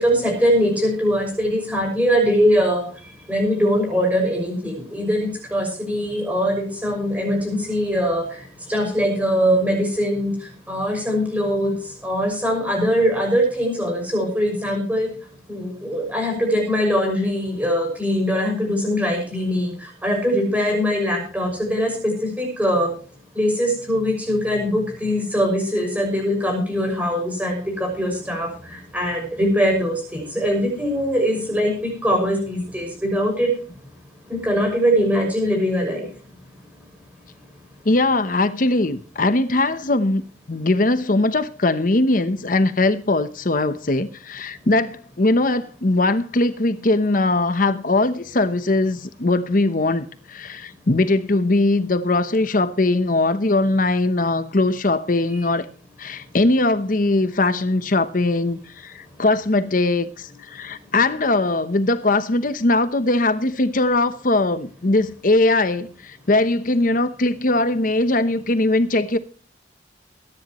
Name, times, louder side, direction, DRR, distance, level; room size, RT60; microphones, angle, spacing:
voice 1, 0.0-2.8 3.3-8.3 8.7-10.4 10.7-11.8 12.0-15.1 15.5-22.9 23.3-33.5 34.3-36.1, equal, 10° right, 6.1 m, -22 dB
voice 2, 37.8-55.7 56.0-69.2, left 2 dB, 45° left, 0.9 m, -20 dB
22.5 x 10.5 x 3.1 m
head